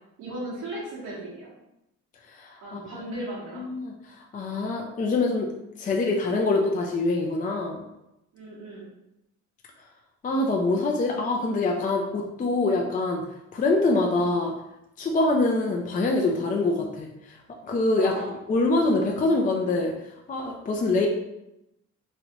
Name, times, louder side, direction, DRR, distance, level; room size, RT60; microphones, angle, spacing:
voice 1, 0.2-1.5 2.6-3.6 8.3-8.9 18.0-18.3, right 1 dB, 85° right, -9 dB, 1.3 m, -36 dB
voice 2, 2.3-3.0 3.6-5.5 5.8-7.8 10.2-13.2 13.5-14.5 15.0-17.4 17.6-18.1 18.5-19.9 20.3-21.1, left 2 dB, 25° left, 1 dB, 0.4 m, -25 dB
3.1 x 2.4 x 2.9 m, 0.88 s
cardioid pair, 90°, 30 cm